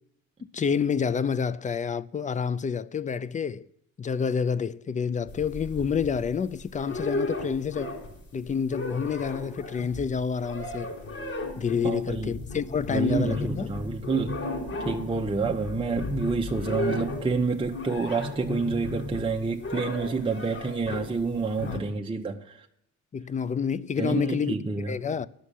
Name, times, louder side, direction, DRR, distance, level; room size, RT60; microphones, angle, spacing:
voice 1, 0.5-3.6 4.0-7.9 8.3-10.9 11.6-13.7 21.7-21.8 23.1-24.5 24.9-25.3, left 6 dB, 25° left, 0.5 m, -28 dB
sound 1, 5.3-6.3 6.7-8.2 8.5-21.1 21.6-21.8, left 2 dB, 45° left, 5.1 m, -35 dB
voice 2, 11.8-12.4 12.9-14.4 14.8-22.7 24.0-25.0, right 4 dB, 15° right, 0.8 m, -28 dB
11.0 x 6.4 x 8.3 m
cardioid pair, 90°, 30 cm